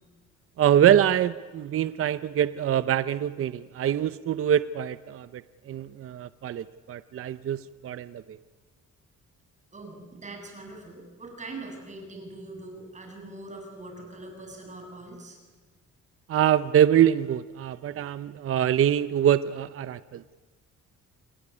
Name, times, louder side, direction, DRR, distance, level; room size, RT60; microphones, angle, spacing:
voice 1, 0.6-8.4 16.3-20.2, right 10 dB, 45° right, 14 dB, 0.8 m, -24 dB
voice 2, 9.7-15.4, right 2 dB, 25° right, 2 dB, 7.9 m, -42 dB
28.5 x 21.0 x 9.8 m, 1.3 s
cardioid pair, 140°, 30 cm